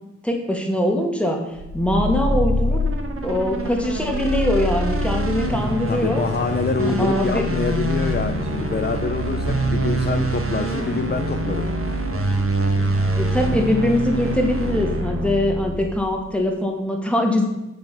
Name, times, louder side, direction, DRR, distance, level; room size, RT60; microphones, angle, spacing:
voice 1, 0.2-2.8 3.2-6.2 7.0-7.5 13.1-17.4, left 1 dB, 5° left, 1 dB, 1.9 m, -22 dB
sound 1, 1.5-16.1, right 1 dB, 45° right, 1.5 m, -24 dB
sound 2, 5.1-15.0, left 5 dB, 75° left, 2.0 m, -37 dB
voice 2, 5.9-11.7, left 4 dB, 35° left, 6 dB, 0.6 m, -26 dB
7.7 x 7.0 x 6.9 m, 0.96 s
wide cardioid pair, 95°, 31 cm